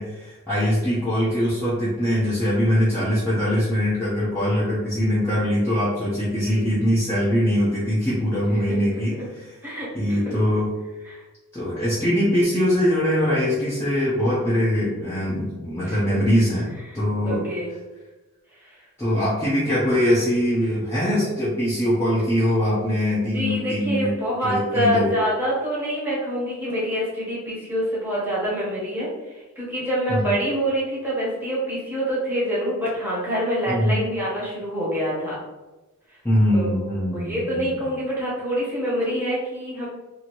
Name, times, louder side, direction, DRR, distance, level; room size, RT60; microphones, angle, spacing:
voice 1, 0.0-9.1 9.9-10.7 11.5-16.7 16.9-17.5 19.0-24.1 24.4-25.1 30.1-30.3 33.7-34.0 36.2-37.8, equal, 10° left, -10 dB, 0.7 m, -22 dB
voice 2, 15.8-16.2 16.9-17.7 18.6-18.8 22.6-35.4 36.1-36.2 36.5-36.8 37.1-39.8, equal, 10° right, -7 dB, 1.0 m, -26 dB
2.7 x 2.6 x 2.9 m, 1.1 s
head